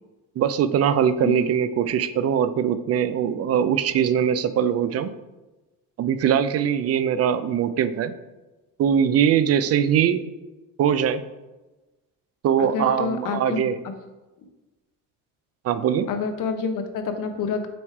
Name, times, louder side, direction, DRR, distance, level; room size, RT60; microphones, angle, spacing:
voice 1, 0.4-5.1 6.0-8.1 8.8-10.2 10.8-11.2 12.4-13.8 15.6-16.1, right 8 dB, 40° right, 13 dB, 0.4 m, -21 dB
voice 2, 12.6-13.7 16.1-17.7, left 5 dB, 55° left, 7 dB, 0.9 m, -28 dB
7.2 x 3.1 x 4.5 m, 1.1 s
cardioid pair, 110°, 38 cm